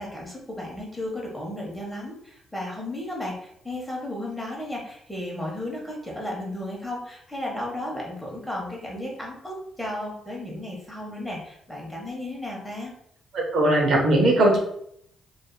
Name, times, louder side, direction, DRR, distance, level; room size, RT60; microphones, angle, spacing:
voice 1, 0.0-12.9, left 1 dB, 5° left, -2 dB, 0.9 m, -34 dB
voice 2, 13.3-14.6, right 1 dB, 65° right, 0 dB, 0.7 m, -19 dB
2.7 x 2.3 x 2.2 m, 0.70 s
cardioid pair, 90°, 0 cm